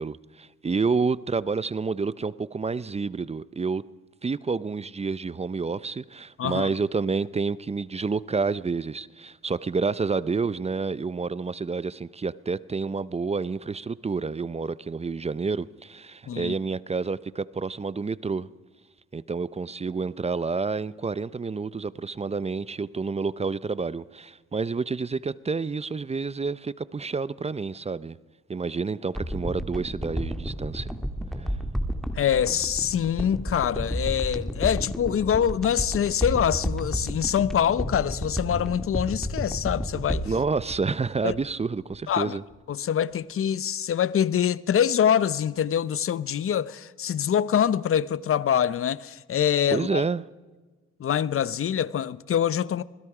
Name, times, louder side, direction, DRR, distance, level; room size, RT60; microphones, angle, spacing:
voice 1, 0.0-3.8 4.2-18.5 19.1-28.2 28.5-30.9 31.4-31.5 40.3-42.4 49.7-50.3, right 4 dB, 20° right, 0.6 m, -29 dB
voice 2, 6.4-6.7 16.3-16.5 32.2-40.3 41.2-41.4 42.1-42.4 42.7-50.0 51.0-52.8, left 9 dB, 45° left, 0.8 m, -25 dB
sound 1, 29.1-41.6 41.9-42.0, equal, ahead, 2.0 m, -32 dB
27.5 x 20.5 x 4.9 m
cardioid pair, 90°, 30 cm